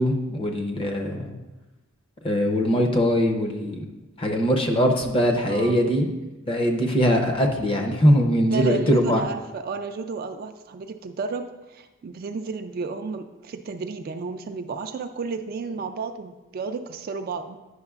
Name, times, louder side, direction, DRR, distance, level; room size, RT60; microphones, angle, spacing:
voice 1, 0.0-1.3 2.2-3.8 4.2-6.1 6.5-9.2, equal, 25° left, 3 dB, 0.6 m, -21 dB
voice 2, 5.5-5.9 8.5-17.6, right 4 dB, 45° right, 7 dB, 0.3 m, -32 dB
9.6 x 5.7 x 2.4 m, 1.1 s
head